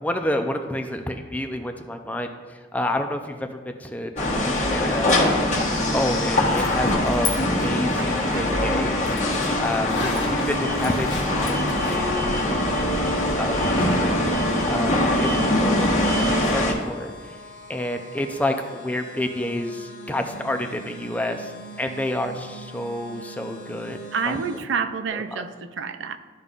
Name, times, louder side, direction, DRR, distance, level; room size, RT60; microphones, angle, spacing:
voice 1, 0.0-5.5 5.9-7.3 7.6-11.6 11.9-12.1 12.4-12.5 13.4-14.2 14.7-15.9 16.3-17.1 17.7-21.5 21.8-24.0 24.3-24.4, left 1 dB, 10° left, 5 dB, 0.4 m, -29 dB
sound 1, 4.2-16.7, left 1 dB, 40° left, 1.3 m, -22 dB
Zipper (clothing), 6.5-7.3 7.6-12.0, left 4 dB, 80° left, 1.3 m, -34 dB
voice 2, 8.0-8.9 24.1-26.2, right 6 dB, 90° right, 10 dB, 0.5 m, -29 dB
sound 2, 11.1-24.6, right 1 dB, 65° left, 1.1 m, -42 dB
13.0 x 5.2 x 2.4 m, 1.5 s
head